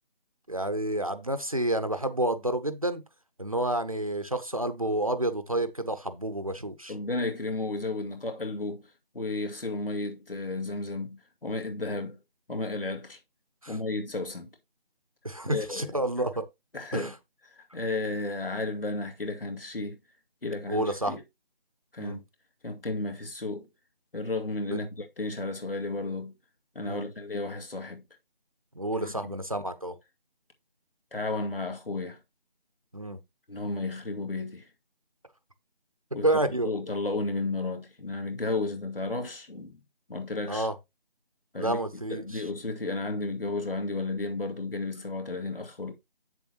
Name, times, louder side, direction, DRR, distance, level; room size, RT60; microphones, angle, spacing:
voice 1, 0.5-3.0 3.4-6.9 13.6-13.8 15.2-16.4 16.9-17.1 20.7-21.1 22.0-22.2 26.8-27.0 28.7-29.9 32.9-33.2 36.2-36.7 40.5-40.7 41.6-42.5, right 1 dB, 35° right, 0.7 m, -29 dB
voice 2, 6.9-8.9 9.1-12.2 12.5-13.2 13.7-14.5 15.5-16.0 16.7-17.1 17.6-20.0 20.4-21.2 21.9-22.2 22.6-23.7 24.1-26.3 26.7-28.0 29.0-29.3 31.1-32.2 33.5-34.6 36.1-36.3 36.6-39.8 40.1-40.7 41.5-41.8 42.1-45.9, left 3 dB, 65° left, 2.3 m, -33 dB
8.3 x 7.2 x 2.9 m
figure-of-eight pair, 175°, 30 cm